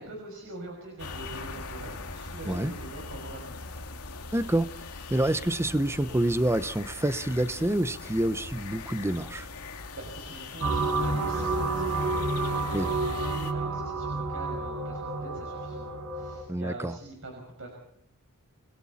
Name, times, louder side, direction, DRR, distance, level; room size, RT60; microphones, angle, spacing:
voice 1, 0.0-3.5 9.7-17.7, right 2 dB, 65° right, 5.9 m, -43 dB
sound 1, 1.0-13.5, left 3 dB, 80° left, 2.4 m, -41 dB
voice 2, 4.3-4.7 5.1-9.5 12.7-12.9 16.5-16.9, right 1 dB, 10° right, 0.8 m, -27 dB
sound 2, 10.6-16.4, right 3 dB, 85° right, 6.6 m, -30 dB
29.0 x 21.0 x 4.2 m
head